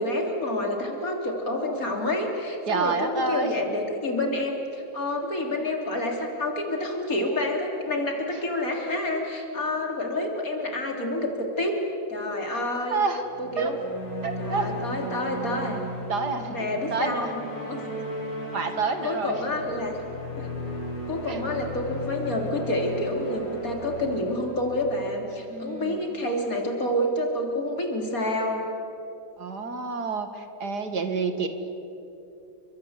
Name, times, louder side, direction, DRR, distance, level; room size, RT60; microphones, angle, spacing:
voice 1, 0.0-11.8 12.1-13.0 13.4-13.8 14.4-15.8 16.4-17.9 19.0-19.9 20.4-20.5 21.1-28.7, left 1 dB, 50° left, 2 dB, 3.8 m, -28 dB
voice 2, 2.7-3.5 12.9-13.2 13.6-13.7 14.2-14.8 16.1-17.3 18.5-19.4 21.2-21.4 25.5-26.0 29.4-31.5, right 4 dB, 60° right, 7 dB, 2.4 m, -28 dB
sound 1, 13.2-25.7, left 1 dB, 75° left, 6.9 m, -36 dB
29.5 x 24.5 x 8.1 m, 2.9 s
omnidirectional pair, 2.0 m